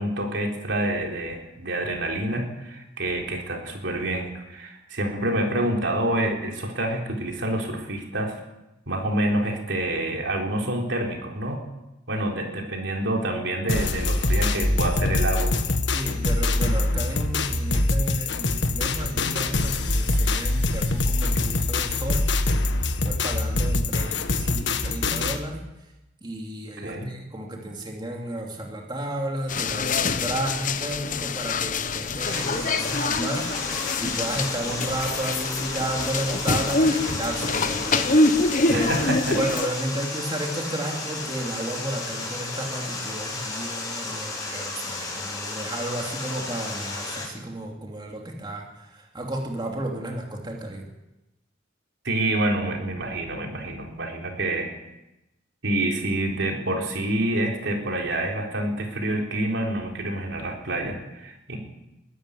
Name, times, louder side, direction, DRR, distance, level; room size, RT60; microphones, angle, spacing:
voice 1, 0.0-8.4 8.9-11.6 12.1-15.5 26.8-27.1 38.7-39.4 52.0-54.7 55.6-61.6, right 1 dB, 65° right, 1 dB, 4.0 m, -27 dB
sound 1, 13.7-25.4, left 2 dB, 65° left, 1.6 m, -24 dB
voice 2, 15.9-22.3 23.0-25.7 26.2-33.5 34.0-38.1 38.7-38.9 39.3-50.9, right 1 dB, 25° right, 0 dB, 2.7 m, -32 dB
sound 2, 29.5-39.7, left 3 dB, 45° left, 1.0 m, -25 dB
Water, 32.2-47.2, left 3 dB, 20° left, 7.5 m, -33 dB
21.5 x 13.0 x 9.9 m, 0.96 s
head